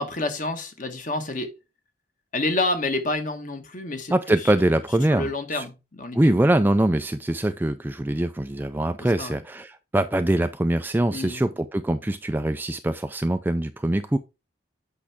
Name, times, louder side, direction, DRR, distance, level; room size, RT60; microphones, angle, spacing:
voice 1, 0.0-1.5 2.3-4.5 5.1-6.3 9.2-9.4 11.1-11.4, left 2 dB, 40° left, 1.3 m, -28 dB
voice 2, 4.1-5.7 6.1-14.2, right 1 dB, 10° right, 0.3 m, -23 dB
8.5 x 5.6 x 3.5 m
head